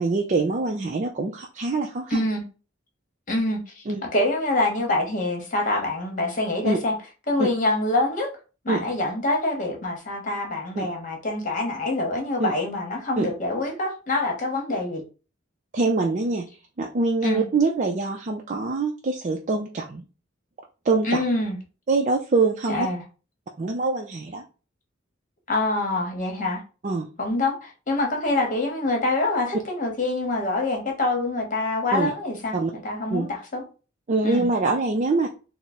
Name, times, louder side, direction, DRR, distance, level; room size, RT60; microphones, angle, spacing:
voice 1, 0.0-2.3 3.9-4.0 6.6-6.8 7.4-7.5 8.7-8.9 10.8-10.9 12.4-12.5 13.2-13.3 15.7-16.5 16.8-20.0 20.8-21.2 21.9-22.9 23.6-24.4 26.8-27.1 31.9-32.1 32.5-32.7 33.1-33.3 34.1-35.3, right 3 dB, 40° right, 0.4 m, -24 dB
voice 2, 2.1-2.4 3.3-3.8 4.1-6.9 7.3-8.3 8.6-15.0 17.2-17.4 21.0-21.6 22.7-23.0 25.5-26.6 27.2-33.6 34.2-34.5, left 2 dB, 40° left, 1.1 m, -25 dB
3.6 x 2.0 x 4.2 m
head